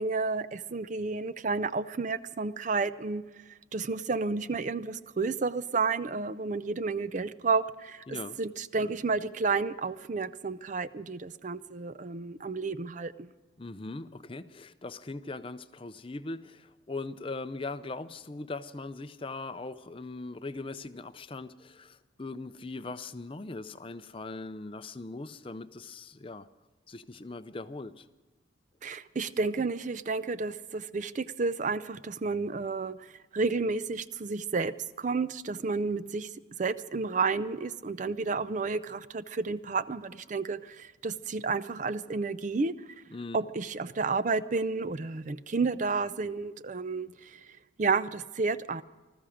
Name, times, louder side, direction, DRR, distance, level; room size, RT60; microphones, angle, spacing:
voice 1, 0.0-3.2 3.7-13.3 28.8-42.7 43.3-47.5 47.8-48.8, right 4 dB, 40° right, 0.5 m, -31 dB
voice 2, 8.1-8.4 13.6-26.5 26.9-28.1 43.1-43.4, left 3 dB, 25° left, 0.5 m, -40 dB
20.0 x 14.0 x 5.0 m
head